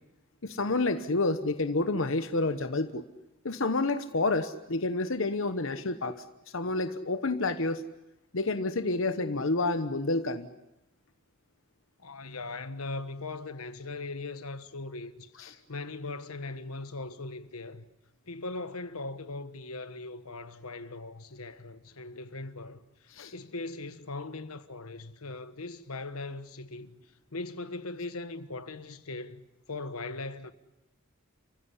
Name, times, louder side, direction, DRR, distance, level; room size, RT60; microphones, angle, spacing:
voice 1, 0.4-3.0 3.4-6.2 6.5-7.8 8.3-10.5 15.4-15.5 23.1-23.3, left 2 dB, 65° left, 1.0 m, -29 dB
voice 2, 12.0-15.3 15.7-17.9 18.2-27.0 27.3-29.4 29.7-30.5, left 3 dB, 85° left, 1.4 m, -39 dB
29.5 x 15.5 x 9.9 m
head